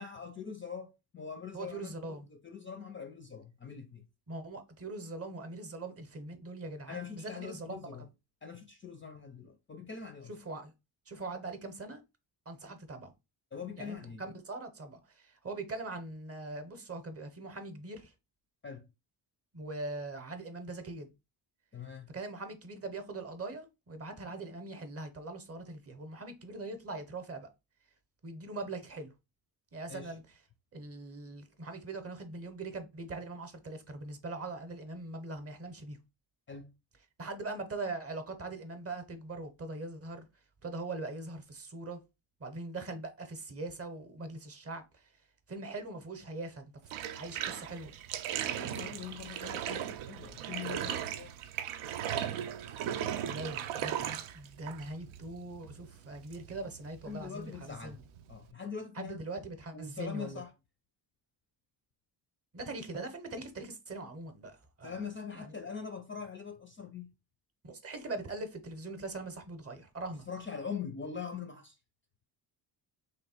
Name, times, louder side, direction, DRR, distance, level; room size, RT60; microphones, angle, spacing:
voice 1, 0.0-4.1 6.9-8.0 8.4-10.3 13.5-14.2 18.6-18.9 21.7-22.1 29.9-30.1 36.5-36.7 48.6-51.4 57.1-58.0 58.3-59.2 59.7-60.5 64.8-67.1 70.3-71.8, left 6 dB, 25° left, 0.4 m, -43 dB
voice 2, 1.5-2.3 4.3-8.1 10.3-10.7 11.1-12.0 12.5-13.1 13.8-18.1 19.5-21.1 22.1-27.5 28.2-29.1 29.7-30.4 30.7-36.0 37.2-40.3 40.6-42.0 42.4-45.1 45.5-46.7 47.1-47.9 53.2-58.0 58.9-60.4 62.5-65.0 65.3-65.5 67.6-70.2, right 2 dB, 30° right, 0.8 m, -42 dB
Bathtub (filling or washing), 46.8-58.5, right 10 dB, 85° right, 0.5 m, -38 dB
3.2 x 2.6 x 4.2 m
cardioid pair, 110°, 47 cm